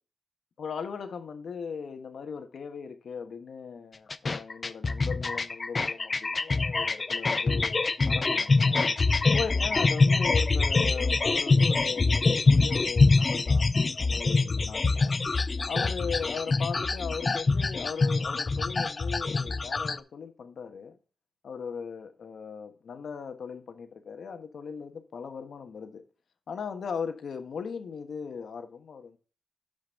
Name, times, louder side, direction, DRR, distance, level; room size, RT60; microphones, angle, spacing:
voice 1, 0.6-8.8 9.3-13.7 14.0-15.1 15.7-21.0 21.4-26.0 26.5-29.2, left 6 dB, 85° left, 1.3 m, -38 dB
sound 1, 4.1-20.0, left 3 dB, 40° left, 0.5 m, -25 dB
12.0 x 5.3 x 3.8 m
wide cardioid pair, 120°, 0 cm